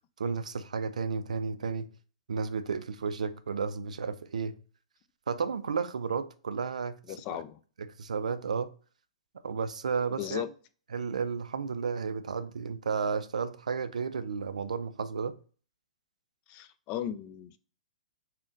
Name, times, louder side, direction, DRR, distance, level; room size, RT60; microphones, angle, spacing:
voice 1, 0.2-1.9 2.3-4.6 5.3-7.4 7.8-8.7 9.4-10.4 10.9-15.4, right 5 dB, 85° right, 0.4 m, -33 dB
voice 2, 7.1-7.6 10.2-10.5 16.5-17.6, left 11 dB, 30° left, 0.3 m, -36 dB
3.8 x 2.2 x 3.7 m
hypercardioid pair, 130°, 4 cm